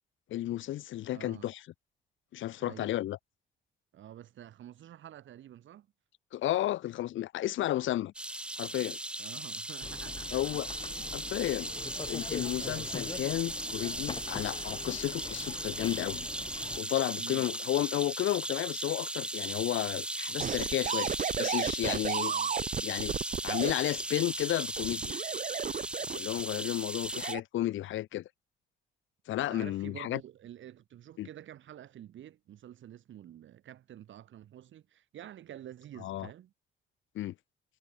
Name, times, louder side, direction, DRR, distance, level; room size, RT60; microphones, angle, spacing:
voice 1, 0.3-1.6 2.3-3.2 6.3-8.1 8.6-9.0 10.3-10.7 11.1-11.7 12.0-16.3 16.8-21.1 21.4-22.3 22.7-23.1 23.4-25.1 26.1-28.3 29.3-30.2 31.2-31.3 36.0-36.3 37.1-37.3, left 14 dB, 80° left, 1.2 m, -32 dB
voice 2, 1.1-1.5 2.6-3.0 3.9-5.9 9.2-10.6 11.0-11.1 12.6-12.9 17.2-17.5 22.3-22.5 26.5-26.8 29.3-36.5, right 11 dB, 75° right, 6.8 m, -49 dB
sound 1, 8.1-27.3, right 1 dB, 5° right, 0.4 m, -37 dB
sound 2, 9.8-16.8, left 4 dB, 25° left, 1.0 m, -43 dB
sound 3, 20.4-23.7 24.8-26.4 27.1-27.4, right 8 dB, 40° right, 0.8 m, -33 dB
cardioid pair, 90°, 20 cm